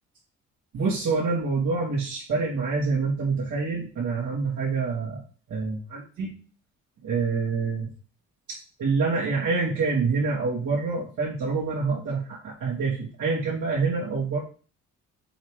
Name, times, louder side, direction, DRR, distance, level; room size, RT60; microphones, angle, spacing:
voice 1, 0.7-5.2 5.5-6.3 7.0-7.9 8.5-14.4, right 4 dB, 75° right, -8 dB, 3.0 m, -26 dB
7.0 x 3.8 x 5.0 m, 0.39 s
cardioid pair, 90°, 30 cm